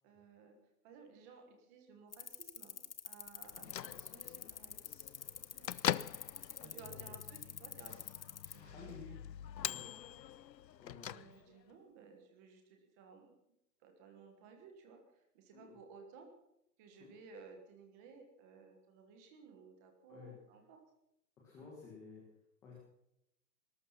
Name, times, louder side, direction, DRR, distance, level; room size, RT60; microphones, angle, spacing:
voice 1, 0.0-0.6 0.8-4.8 5.5-5.7 6.6-8.1 8.4-9.0 9.8-10.2 11.1-13.3 13.8-16.3 16.8-20.8 21.6-21.7, right 5 dB, 10° right, 4 dB, 1.3 m, -58 dB
sound 1, 2.1-8.6, left 7 dB, 35° left, 0.8 m, -46 dB
Bell / Microwave oven, 3.4-11.7, left 11 dB, 85° left, 0.7 m, -43 dB
voice 2, 6.6-7.0 8.5-9.2 9.7-9.8 10.8-11.2 15.5-15.8 17.0-17.1 20.1-20.3 21.4-22.2 22.6-22.7, left 4 dB, 5° left, -4 dB, 1.5 m, -53 dB
19.5 x 12.5 x 5.7 m, 0.80 s
hypercardioid pair, 175°, 49 cm